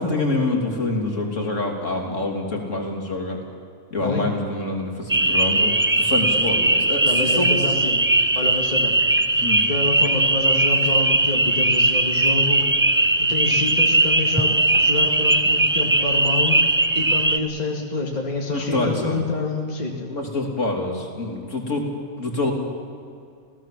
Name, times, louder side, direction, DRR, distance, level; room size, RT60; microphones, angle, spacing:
voice 1, 0.0-3.4 3.9-7.5 9.4-9.6 18.5-19.2 20.1-21.9 22.2-22.5, left 2 dB, 60° left, 1 dB, 3.5 m, -26 dB
sound 1, 5.1-17.4, right 2 dB, 20° right, 0.3 m, -19 dB
voice 2, 7.0-8.1 8.4-8.9 9.7-12.6 13.2-16.6 17.0-20.1, left 3 dB, 30° left, 0 dB, 2.3 m, -27 dB
28.0 x 17.0 x 7.6 m, 2.4 s
omnidirectional pair, 1.5 m